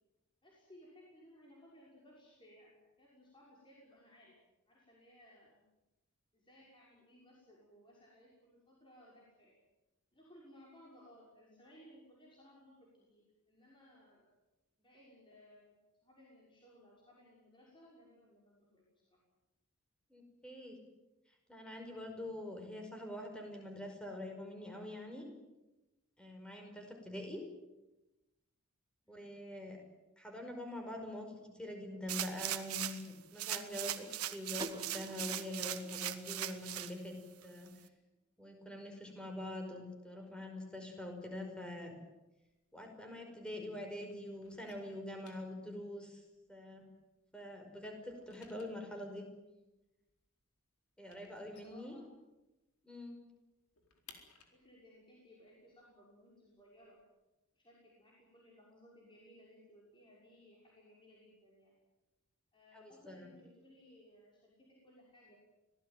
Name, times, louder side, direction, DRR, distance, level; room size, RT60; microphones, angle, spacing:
voice 1, 0.4-4.4 4.7-5.6 6.3-9.6 10.1-14.3 14.8-15.8 16.0-19.2 29.0-29.3 51.4-52.0 54.5-57.0 57.5-61.7 62.5-65.4, equal, 20° left, -5 dB, 6.1 m, -61 dB
voice 2, 20.1-20.8 21.5-25.3 26.2-27.4 29.1-29.8 30.2-37.2 37.4-37.7 38.4-41.9 42.7-46.2 46.5-46.9 47.3-49.3 51.0-51.9 52.8-53.2 62.7-63.2, left 1 dB, 5° left, 3 dB, 5.3 m, -45 dB
sound 1, 32.1-33.1 33.4-36.9 37.4-37.5, right 12 dB, 80° right, 1.7 m, -39 dB
sound 2, 34.6-37.4, right 2 dB, 20° right, 0.7 m, -51 dB
sound 3, 42.3-43.8 44.0-47.3 47.6-52.6 52.9-53.0 53.3-57.0, left 6 dB, 75° left, 4.3 m, -64 dB
25.5 x 18.0 x 9.2 m, 1.0 s
head